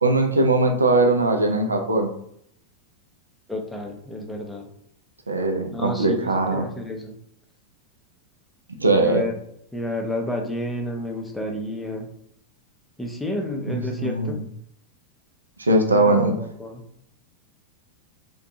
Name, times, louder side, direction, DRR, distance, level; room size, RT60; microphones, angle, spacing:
voice 1, 0.0-2.1 5.3-6.7 8.8-9.2 13.7-14.4 15.6-16.4, right 2 dB, 75° right, 4 dB, 0.4 m, -20 dB
voice 2, 3.5-4.7 5.7-7.2 8.9-9.4 9.7-12.1 13.0-14.4 15.9-16.8, left 1 dB, 5° left, 1 dB, 0.5 m, -30 dB
2.5 x 2.2 x 2.6 m, 0.70 s
figure-of-eight pair, 90°, 0 cm